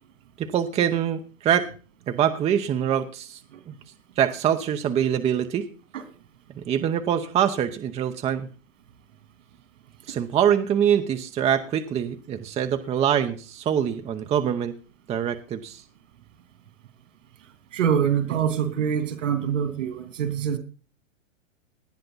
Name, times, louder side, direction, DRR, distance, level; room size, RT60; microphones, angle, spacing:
voice 1, 0.4-1.7 2.1-3.4 3.7-3.8 4.2-5.7 6.6-8.5 10.1-14.7 15.1-15.8, right 9 dB, 15° right, 7 dB, 0.8 m, -24 dB
voice 2, 17.7-20.6, right 8 dB, 70° right, 9 dB, 3.1 m, -25 dB
19.0 x 10.5 x 4.0 m, 0.36 s
hypercardioid pair, 135°, 39 cm